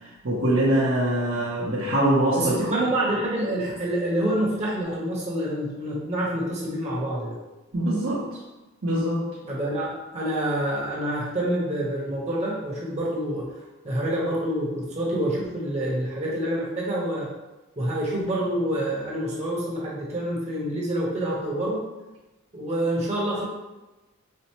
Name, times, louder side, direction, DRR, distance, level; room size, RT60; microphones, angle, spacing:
voice 1, 0.2-2.5 7.7-8.4 8.8-9.3, right 1 dB, 65° right, -8 dB, 0.7 m, -23 dB
voice 2, 2.4-7.4 9.5-13.5 13.8-17.3 17.8-21.8 22.5-23.4, right 1 dB, 30° right, -5 dB, 0.7 m, -27 dB
4.2 x 2.0 x 2.9 m, 1.1 s
head